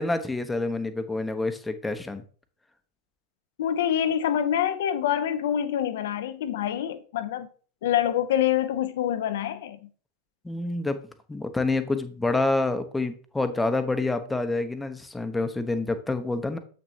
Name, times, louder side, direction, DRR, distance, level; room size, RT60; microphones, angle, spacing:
voice 1, 0.0-2.2 10.4-11.0 11.3-16.6, left 2 dB, 10° left, 0.9 m, -27 dB
voice 2, 3.6-7.5 7.8-9.9, left 10 dB, 55° left, 0.8 m, -26 dB
8.0 x 5.9 x 2.8 m
figure-of-eight pair, 90°, 0 cm